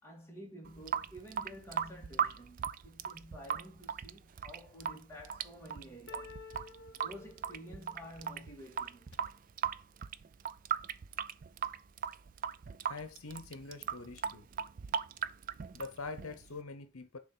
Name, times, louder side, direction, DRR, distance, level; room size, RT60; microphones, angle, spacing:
voice 1, 0.0-6.3 6.9-9.1 13.8-13.9, equal, 10° left, 2.2 m, -50 dB
Water tap faucet / Sink (filling or washing) / Drip, 0.6-16.6, right 8 dB, 40° right, 0.4 m, -38 dB
sound 1, 6.1-9.2, left 4 dB, 55° left, 0.7 m, -53 dB
voice 2, 12.8-14.5 15.7-17.2, left 3 dB, 85° left, 0.9 m, -44 dB
7.1 x 3.1 x 6.1 m
head